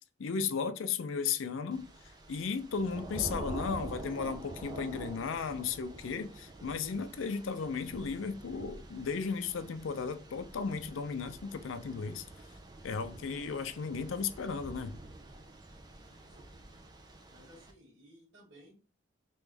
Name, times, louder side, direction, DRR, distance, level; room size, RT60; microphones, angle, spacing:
voice 1, 0.2-1.9 2.3-12.3 12.8-15.0, left 5 dB, 85° left, 0.4 m, -35 dB
Thunder / Rain, 1.7-17.7, right 1 dB, 20° right, 0.4 m, -47 dB
voice 2, 15.9-16.8 17.3-18.7, equal, 60° right, 1.7 m, -59 dB
3.4 x 3.0 x 3.3 m
head